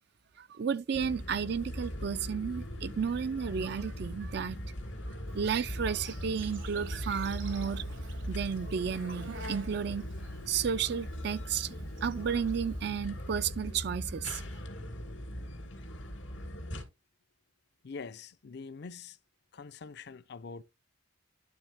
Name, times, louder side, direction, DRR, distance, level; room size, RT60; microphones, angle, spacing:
voice 1, 0.4-4.6 5.3-7.8 8.3-10.1 10.5-11.7 12.0-14.4, right 7 dB, 60° right, 0.4 m, -32 dB
sound 1, 0.9-16.8, equal, 80° left, 2.5 m, -40 dB
Insect, 5.3-12.9, right 2 dB, 80° right, 1.9 m, -51 dB
voice 2, 17.8-19.2 19.5-20.6, left 4 dB, 60° left, 0.5 m, -44 dB
12.0 x 4.0 x 3.4 m
head